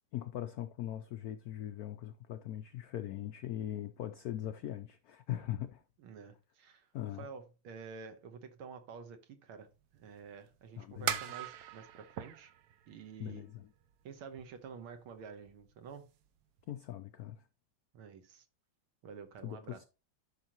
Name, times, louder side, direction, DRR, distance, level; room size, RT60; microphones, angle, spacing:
voice 1, 0.1-5.8 6.9-7.3 10.8-11.2 13.2-13.7 16.7-17.4 19.4-19.8, left 12 dB, 85° left, 0.8 m, -40 dB
voice 2, 6.0-6.9 7.2-9.7 9.9-12.5 12.9-13.5 14.0-16.1 17.9-18.5 19.0-19.9, right 5 dB, 85° right, 2.0 m, -49 dB
Pipe Echoes, 9.6-14.8 15.2-15.7 16.0-16.3 16.6-16.7, right 10 dB, 65° right, 1.0 m, -40 dB
11.5 x 5.8 x 2.9 m
omnidirectional pair, 2.3 m